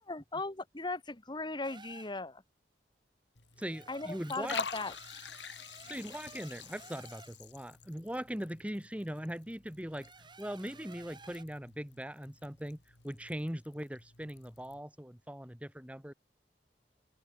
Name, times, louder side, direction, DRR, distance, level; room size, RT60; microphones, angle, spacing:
voice 1, 0.1-2.4 3.9-4.9, left 3 dB, 25° left, 1.7 m, -38 dB
sound 1, 1.6-2.2 3.6-7.4 9.9-11.4, right 4 dB, 25° right, 7.7 m, -54 dB
Liquid, 3.4-14.8, left 6 dB, 90° left, 5.8 m, -47 dB
voice 2, 3.6-4.6 5.9-10.1 10.4-12.8 13.0-16.1, equal, 10° right, 2.0 m, -40 dB
open air
head